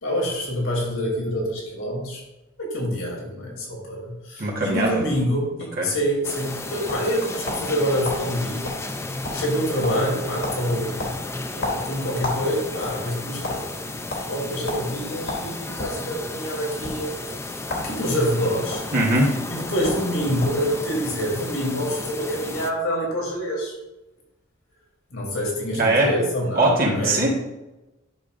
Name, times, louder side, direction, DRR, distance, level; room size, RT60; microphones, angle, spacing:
voice 1, 0.0-2.2 2.6-8.6 9.3-11.0 11.5-17.1 17.5-18.8 19.5-23.7 25.1-27.3, equal, 90° left, -2 dB, 3.0 m, -26 dB
voice 2, 4.4-5.0 5.8-5.9 18.9-19.4 25.7-26.1 26.5-27.3, right 2 dB, 45° right, -3 dB, 1.4 m, -20 dB
sound 1, 6.2-22.7, left 2 dB, 15° left, 0.5 m, -33 dB
sound 2, 6.9-7.7 8.0-8.2 8.6-8.8 9.1-9.6 9.8-10.1 10.4-10.6 11.0-12.4 12.7-13.6 14.1-14.2 14.7-14.8 15.3-16.0 16.7-16.9 17.6-17.9 18.2-18.8 19.5-19.6 19.8-20.0 20.4-20.7, left 2 dB, 65° left, 2.9 m, -30 dB
10.5 x 6.7 x 2.6 m, 1.0 s
head